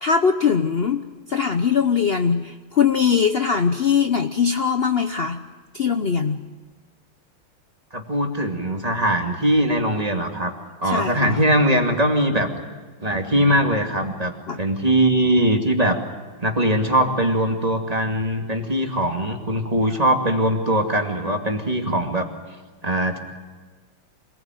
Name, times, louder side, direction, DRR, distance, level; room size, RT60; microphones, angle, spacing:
voice 1, 0.0-5.4 5.7-6.4 10.8-11.4 14.5-14.6, left 6 dB, 65° left, 8 dB, 0.6 m, -21 dB
voice 2, 7.9-10.5 10.8-12.5 13.0-14.3 14.6-16.0 16.4-22.3 22.8-23.2, right 1 dB, 20° right, 3 dB, 2.4 m, -21 dB
26.0 x 20.5 x 9.2 m, 1.4 s
omnidirectional pair, 2.3 m